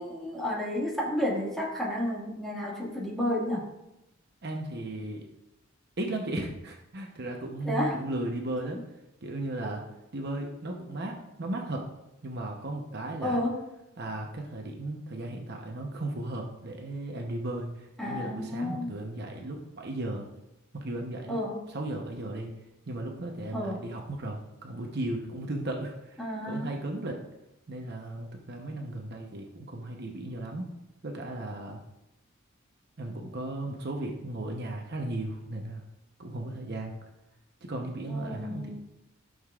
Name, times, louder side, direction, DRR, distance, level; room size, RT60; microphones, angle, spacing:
voice 1, 0.0-3.7 7.7-8.0 13.2-13.6 18.0-18.9 21.3-21.6 23.5-23.8 26.2-26.7 38.1-38.7, left 1 dB, ahead, -5 dB, 1.9 m, -31 dB
voice 2, 4.4-5.2 6.0-8.8 9.2-9.8 10.1-11.8 12.2-13.4 14.0-20.3 20.7-21.4 21.7-22.6 22.9-27.2 27.7-30.7 31.0-31.8 33.0-35.8 36.2-36.9 37.6-38.7, right 1 dB, 50° right, 1 dB, 0.9 m, -35 dB
13.0 x 6.7 x 2.4 m, 0.91 s
head